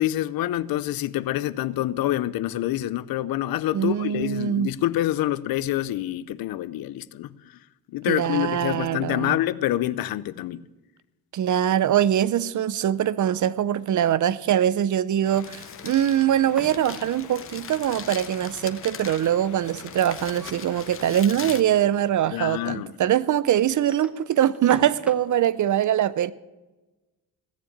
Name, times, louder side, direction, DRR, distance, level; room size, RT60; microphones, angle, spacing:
voice 1, 0.0-7.6 7.9-10.6 22.3-22.9, left 14 dB, 85° left, 0.6 m, -27 dB
voice 2, 3.7-4.7 8.1-9.4 11.3-26.3, right 10 dB, 55° right, 0.6 m, -23 dB
sound 1, 15.2-21.2, left 9 dB, 60° left, 0.9 m, -46 dB
Crumpling crinkling, 15.2-22.5, left 6 dB, 40° left, 1.1 m, -40 dB
sound 2, 16.5-17.4 19.5-20.7 21.1-21.2 21.5-21.6 22.4-22.5 23.6-25.4, equal, 5° right, 1.1 m, -43 dB
16.0 x 7.2 x 8.6 m
cardioid pair, 100°, 35 cm